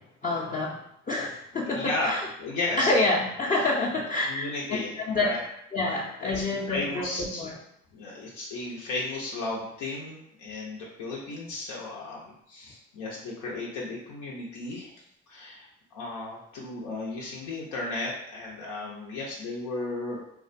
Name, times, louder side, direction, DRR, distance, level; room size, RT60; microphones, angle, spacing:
voice 1, 0.0-2.3 2.8-5.4 5.7-7.6, left 2 dB, 25° left, -4 dB, 0.5 m, -28 dB
voice 2, 1.7-2.1 2.4-2.9 4.3-5.4 6.3-7.4 7.9-20.2, left 2 dB, 85° left, -4 dB, 0.6 m, -34 dB
2.3 x 2.2 x 2.5 m, 0.72 s
supercardioid pair, 50°, 30 cm